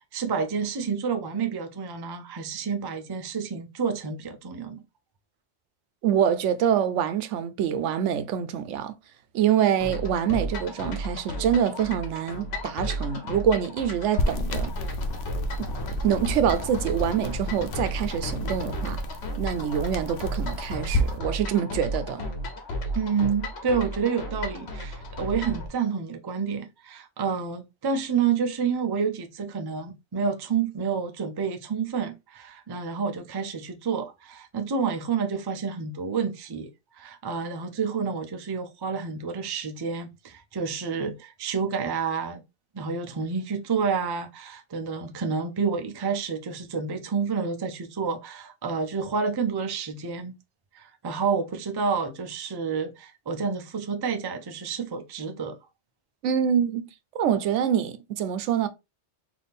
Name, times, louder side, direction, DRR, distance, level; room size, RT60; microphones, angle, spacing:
voice 1, 0.1-4.8 22.9-36.7 36.9-42.4 42.7-50.4 50.7-55.6, right 6 dB, 35° right, 0.4 m, -29 dB
voice 2, 6.0-8.9 9.3-14.7 16.0-19.0 19.4-22.2 56.2-56.9 57.1-58.7, right 9 dB, 85° right, 0.9 m, -25 dB
sound 1, 9.8-25.7, equal, 65° left, 1.1 m, -34 dB
sound 2, 14.2-21.2, left 1 dB, 85° left, 1.0 m, -31 dB
4.1 x 2.7 x 3.4 m
omnidirectional pair, 1.2 m